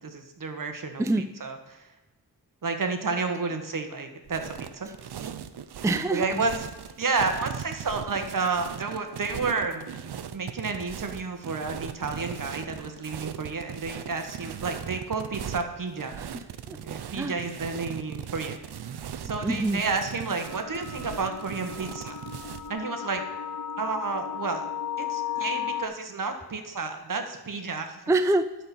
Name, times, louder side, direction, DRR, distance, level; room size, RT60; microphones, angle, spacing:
voice 1, 0.0-1.9 2.6-4.9 6.1-6.7 7.0-16.1 16.7-18.6 19.2-22.2 22.7-23.2 23.8-24.7 25.0-28.0, right 4 dB, 55° right, 6 dB, 1.6 m, -31 dB
voice 2, 1.0-1.3 5.2-5.3 5.8-6.4 16.2-16.8 17.1-17.4 19.4-19.8 28.1-28.6, right 2 dB, 10° right, 10 dB, 0.4 m, -26 dB
sound 1, 4.3-22.7, right 9 dB, 80° right, 0.7 m, -39 dB
sound 2, 20.4-25.9, left 9 dB, 45° left, 0.8 m, -35 dB
12.0 x 4.6 x 7.0 m, 1.1 s
wide cardioid pair, 85°, 39 cm